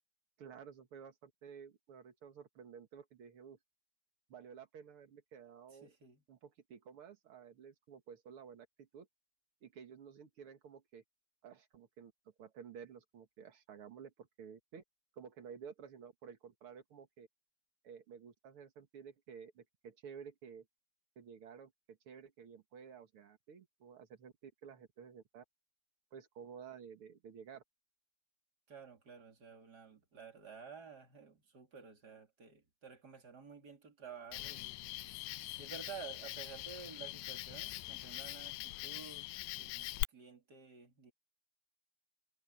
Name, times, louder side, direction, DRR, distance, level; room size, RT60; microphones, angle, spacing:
voice 1, 0.4-3.6 4.3-5.9 6.3-9.1 9.6-11.0 11.4-12.1 12.4-14.8 15.1-17.3 17.8-20.6 21.1-25.4 26.1-27.6, right 7 dB, 75° right, 1.2 m, -53 dB
voice 2, 5.8-6.2 28.7-34.8 35.6-41.1, right 6 dB, 25° right, 2.9 m, -52 dB
Cricket, 34.3-40.0, left 19 dB, 80° left, 2.9 m, -43 dB
omnidirectional pair, 5.1 m